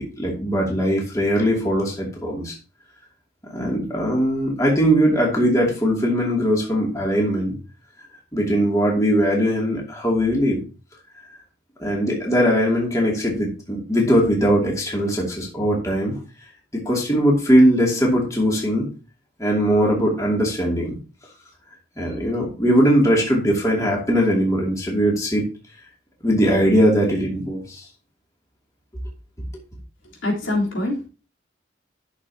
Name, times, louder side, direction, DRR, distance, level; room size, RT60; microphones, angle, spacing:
voice 1, 0.0-2.6 3.5-7.5 8.3-10.6 11.8-16.1 16.7-18.9 19.4-21.0 22.0-25.4 26.2-27.9, equal, 15° left, -3 dB, 2.6 m, -20 dB
voice 2, 30.2-31.1, left 2 dB, 80° left, -3 dB, 3.7 m, -24 dB
13.0 x 6.8 x 2.9 m, 0.34 s
head